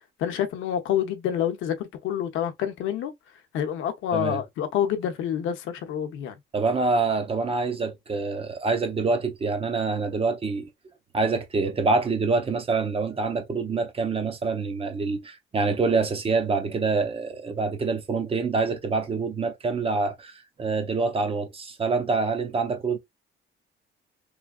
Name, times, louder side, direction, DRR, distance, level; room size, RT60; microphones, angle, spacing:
voice 1, 0.2-3.1 3.5-6.4, left 10 dB, 90° left, 0.7 m, -27 dB
voice 2, 6.5-10.7 11.1-23.0, right 4 dB, 30° right, 0.6 m, -26 dB
3.2 x 2.3 x 2.2 m
cardioid pair, 130°, 20 cm